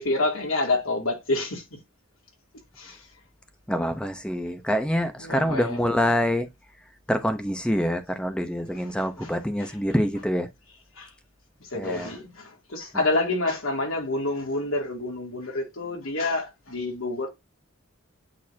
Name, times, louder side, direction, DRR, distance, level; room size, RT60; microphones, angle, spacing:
voice 1, 0.0-1.6 2.8-3.0 5.2-5.8 11.0-11.1 11.7-17.3, left 2 dB, 80° left, 2.7 m, -28 dB
voice 2, 3.7-6.5 7.1-10.5 11.7-12.2 12.9-13.0, equal, 5° left, 0.8 m, -26 dB
8.7 x 4.0 x 2.8 m
head